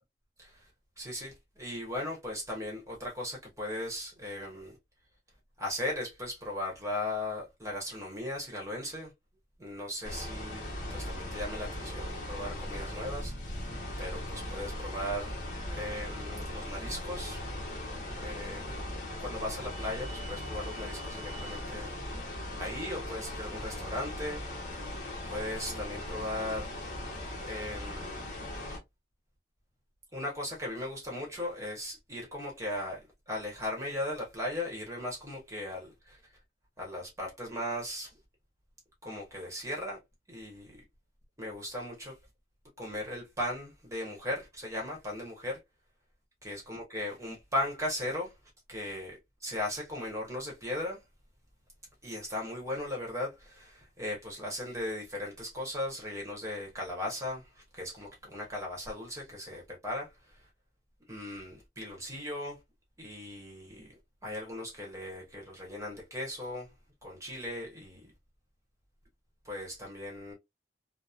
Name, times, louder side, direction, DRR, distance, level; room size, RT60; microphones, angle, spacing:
voice 1, 1.0-4.7 5.6-9.1 9.6-10.6 10.9-13.7 14.0-17.4 18.1-18.9 19.2-21.9 22.6-24.4 25.3-26.7 27.4-28.3 30.1-36.2 36.8-38.1 39.0-40.0 40.3-40.8 41.4-42.1 42.8-45.6 46.4-48.3 48.7-51.0 52.0-60.1 61.1-62.6 63.0-66.7 67.0-68.1 69.4-70.3, left 1 dB, 15° right, 1.0 m, -37 dB
sound 1, 10.0-28.8, left 1 dB, 45° left, 0.8 m, -39 dB
2.8 x 2.0 x 2.4 m
head